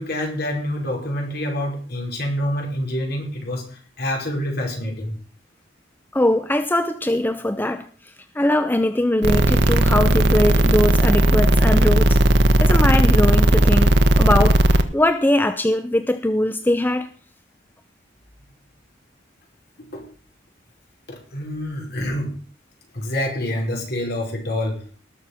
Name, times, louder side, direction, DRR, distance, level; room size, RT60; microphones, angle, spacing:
voice 1, 0.0-5.1 19.8-20.0 21.1-22.3 22.9-24.8, left 1 dB, 55° left, 1 dB, 5.0 m, -27 dB
voice 2, 6.1-7.8 8.4-12.1 12.6-13.9 14.2-17.1, left 1 dB, 10° left, 9 dB, 0.6 m, -21 dB
sound 1, 9.2-14.8, right 1 dB, 60° right, 1.2 m, -16 dB
19.0 x 6.7 x 5.7 m, 0.41 s
head